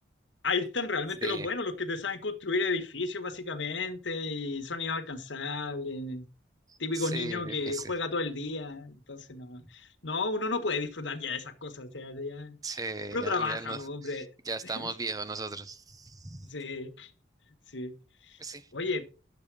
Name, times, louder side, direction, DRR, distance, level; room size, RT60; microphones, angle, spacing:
voice 1, 0.4-6.3 6.8-12.6 13.1-14.3 14.7-14.9 16.5-17.1 17.7-17.9 18.7-19.0, left 3 dB, 75° left, 1.5 m, -33 dB
voice 2, 6.7-7.9 12.6-16.5 18.4-18.7, right 3 dB, 20° right, 0.8 m, -38 dB
10.5 x 7.2 x 4.8 m
head